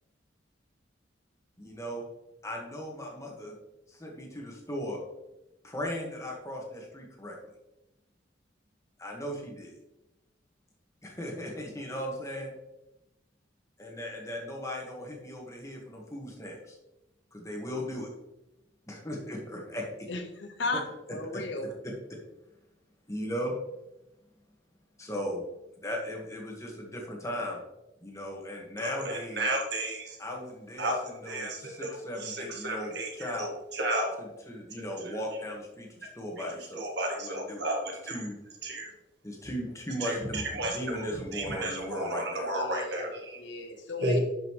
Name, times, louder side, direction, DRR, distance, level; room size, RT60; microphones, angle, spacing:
voice 1, 1.6-2.0 2.4-3.6 3.9-5.0 5.6-7.4 9.0-9.7 11.0-12.5 13.8-16.8 17.3-18.1 18.9-20.1 21.3-22.2 23.1-23.5 25.0-25.4 25.8-27.6 28.0-29.5 30.2-33.6 34.2-37.6 38.0-38.4 39.2-42.5, equal, 15° left, -1 dB, 1.7 m, -37 dB
voice 2, 20.1-20.8 21.1-21.7 42.5-43.1 43.4-44.2, left 3 dB, 70° left, 5 dB, 1.2 m, -35 dB
voice 3, 28.8-30.2 30.8-34.1 34.8-35.4 36.4-38.3 38.6-38.9 40.0-43.7 44.0-44.2, right 1 dB, 60° right, 1 dB, 1.7 m, -33 dB
11.0 x 5.8 x 3.2 m, 0.94 s
head